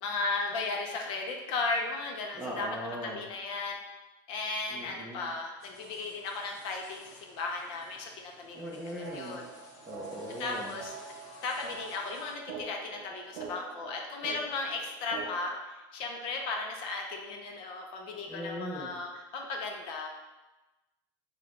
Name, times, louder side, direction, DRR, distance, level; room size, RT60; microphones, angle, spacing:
voice 1, 0.0-2.7 3.0-3.8 4.3-9.5 10.4-10.9 11.4-20.1, left 3 dB, 45° left, 1 dB, 0.6 m, -36 dB
voice 2, 2.3-3.2 4.7-5.3 8.5-9.4 9.8-10.7 18.3-18.9, equal, 5° right, -3 dB, 0.6 m, -39 dB
sound 1, 5.6-12.4, left 1 dB, 30° left, 0.9 m, -55 dB
sound 2, 8.5-15.5, right 5 dB, 65° right, 0.6 m, -46 dB
4.5 x 2.3 x 3.7 m, 1.1 s
supercardioid pair, 150°, 11 cm